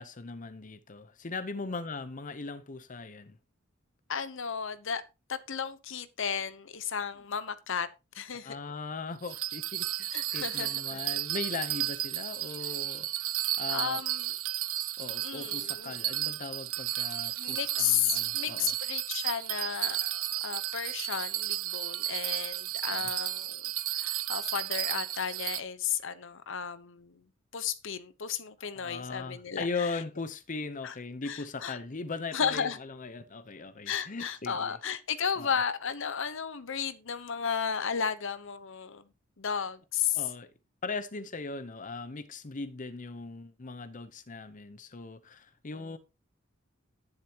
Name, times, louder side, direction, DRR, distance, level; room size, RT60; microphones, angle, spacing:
voice 1, 0.0-3.4 8.4-14.0 15.0-18.7 22.9-23.1 28.6-34.8 35.4-35.6 40.1-40.5 40.8-46.0, left 4 dB, 40° left, 0.7 m, -39 dB
voice 2, 4.1-5.0 5.3-7.9 8.1-8.6 10.1-11.0 13.7-14.3 15.2-15.9 17.4-23.6 23.9-27.1 27.5-29.9 30.8-30.9 31.2-31.8 32.3-32.8 33.9-39.0 39.4-40.2 45.7-46.0, left 7 dB, 65° left, 0.9 m, -34 dB
Bell, 9.2-25.6, right 14 dB, 90° right, 0.7 m, -33 dB
11.0 x 10.5 x 2.9 m
head